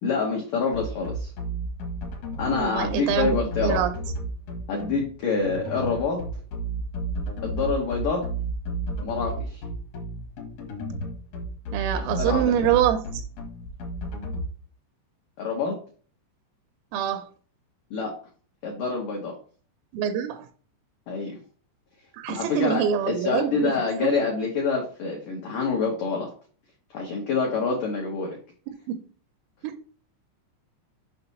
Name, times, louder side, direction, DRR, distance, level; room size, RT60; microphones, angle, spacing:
voice 1, 0.0-1.3 2.4-3.8 4.7-6.2 7.4-8.2 9.0-9.6 12.0-12.7 15.4-15.8 17.9-18.1 18.6-19.3 21.1-21.4 22.3-26.3 26.9-28.4, left 4 dB, 85° left, 1.8 m, -26 dB
sound 1, 0.7-14.4, right 2 dB, 65° left, 1.9 m, -32 dB
voice 2, 2.4-3.4 3.6-3.9 11.7-13.2 16.9-17.3 19.9-20.5 22.2-23.7 28.9-29.0 29.6-29.8, right 9 dB, 85° right, 3.3 m, -25 dB
7.7 x 5.7 x 2.9 m
omnidirectional pair, 5.9 m